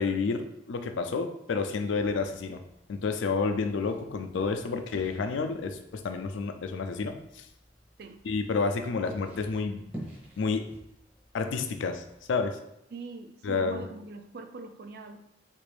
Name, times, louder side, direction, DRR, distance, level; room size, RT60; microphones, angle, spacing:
voice 1, 0.0-2.6 2.9-7.5 8.2-9.8 10.4-10.7 11.3-12.0 12.3-12.6 13.4-13.8, left 4 dB, 80° left, 7 dB, 0.4 m, -30 dB
sound 1, 1.9-12.5, equal, 5° right, 0.8 m, -50 dB
voice 2, 12.9-15.2, right 3 dB, 60° right, 7 dB, 0.4 m, -42 dB
3.4 x 2.5 x 3.3 m, 0.80 s
head